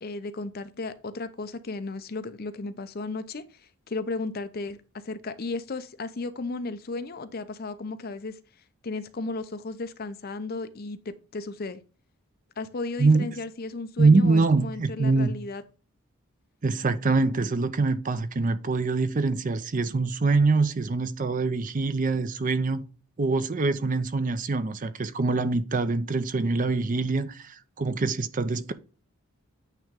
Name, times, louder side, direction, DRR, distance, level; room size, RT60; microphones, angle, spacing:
voice 1, 0.0-8.4 8.8-11.8 12.6-15.6, left 3 dB, 45° left, 0.6 m, -35 dB
voice 2, 14.0-15.3 16.6-22.9 23.2-28.7, right 3 dB, 35° right, 0.5 m, -24 dB
9.0 x 3.0 x 3.6 m
head